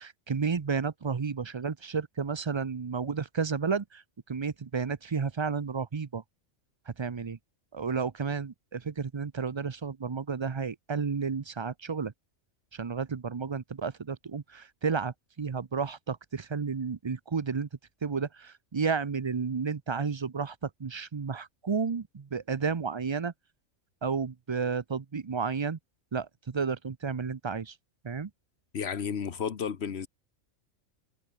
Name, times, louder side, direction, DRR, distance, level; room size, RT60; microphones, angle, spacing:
voice 1, 0.0-6.2 6.9-7.4 7.7-12.1 12.7-17.7 18.0-23.3 24.0-25.8 26.1-27.8 28.0-28.3, right 5 dB, 40° right, 0.4 m, -32 dB
voice 2, 28.7-30.1, left 7 dB, 55° left, 1.4 m, -32 dB
omnidirectional pair, 1.4 m